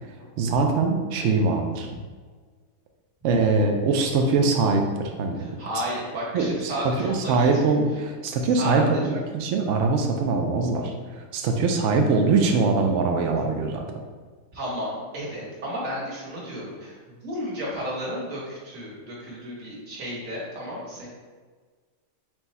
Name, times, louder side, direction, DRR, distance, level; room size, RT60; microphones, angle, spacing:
voice 1, 0.4-1.9 3.2-5.4 6.3-13.8, right 4 dB, 85° right, 3 dB, 0.6 m, -22 dB
voice 2, 5.4-7.8 8.6-9.1 14.5-17.0 17.2-21.1, equal, 50° right, -5 dB, 1.6 m, -33 dB
4.6 x 2.3 x 4.1 m, 1.5 s
omnidirectional pair, 1.8 m